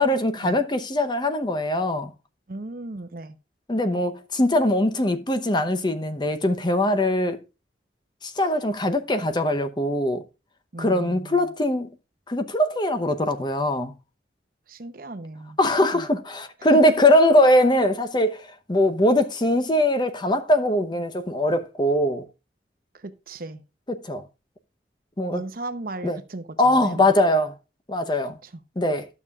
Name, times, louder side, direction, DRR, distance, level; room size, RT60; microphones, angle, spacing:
voice 1, 0.0-2.1 3.7-7.4 8.2-10.2 10.8-11.9 12.3-13.9 15.6-22.2 23.9-24.2 25.2-25.4 26.0-26.2 26.6-27.5 27.9-28.4 28.8-29.1, left 1 dB, 25° left, 0.8 m, -21 dB
voice 2, 2.5-3.4 10.7-11.5 14.7-15.6 15.9-16.1 16.7-16.9 22.9-23.6 25.3-27.1 28.4-28.6, right 2 dB, 50° right, 0.8 m, -36 dB
12.0 x 7.0 x 2.4 m
head